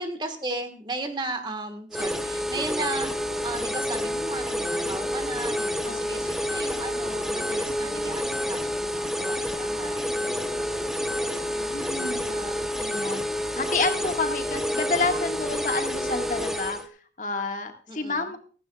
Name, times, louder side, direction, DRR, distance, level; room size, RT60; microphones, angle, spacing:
voice 1, 0.0-3.1 3.4-12.7 17.9-18.3, right 2 dB, 25° right, 7 dB, 1.4 m, -36 dB
sound 1, 1.9-16.8, equal, ahead, 0.8 m, -29 dB
voice 2, 5.9-6.2 11.7-12.2 12.8-13.2 13.5-16.8 17.2-18.4, left 3 dB, 45° left, 5 dB, 1.6 m, -29 dB
16.0 x 15.5 x 2.3 m, 0.40 s
head